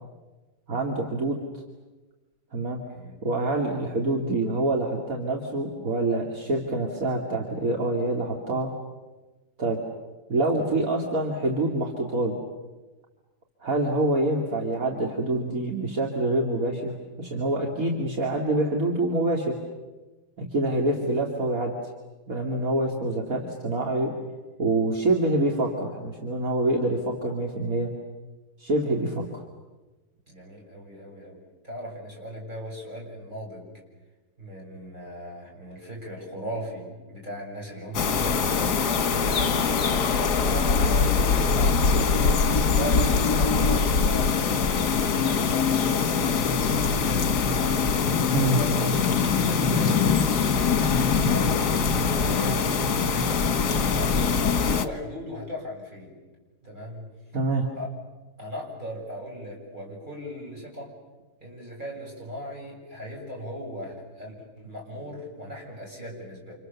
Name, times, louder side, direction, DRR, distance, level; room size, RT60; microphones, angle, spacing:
voice 1, 0.7-1.4 2.5-2.8 3.2-8.7 9.6-9.8 10.3-12.4 13.6-19.5 20.4-21.7 22.3-24.1 24.6-27.9 28.6-29.2 48.3-48.6 57.3-57.7, right 2 dB, 55° right, 0 dB, 2.9 m, -26 dB
voice 2, 2.9-3.3 10.6-10.8 20.7-21.1 30.3-33.7 34.4-48.0 48.3-50.8 51.2-53.7 54.0-56.2 56.6-57.1 57.8-57.9 58.4-60.9 61.4-66.5, equal, 30° right, -2 dB, 7.5 m, -38 dB
sound 1, 37.9-54.9, left 5 dB, 75° left, 2.0 m, -23 dB
29.5 x 28.0 x 7.0 m, 1.2 s
omnidirectional pair, 1.7 m